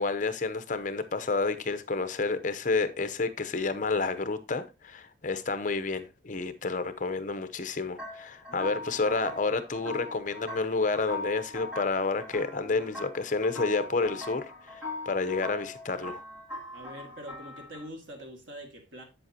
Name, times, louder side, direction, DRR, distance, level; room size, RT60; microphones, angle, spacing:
voice 1, 0.0-16.2, left 3 dB, 45° left, 0.7 m, -30 dB
Moving Light, 8.0-17.9, left 2 dB, 5° right, 2.9 m, -41 dB
voice 2, 8.5-8.8 16.7-19.0, equal, 85° right, 2.0 m, -44 dB
7.9 x 7.8 x 2.8 m
head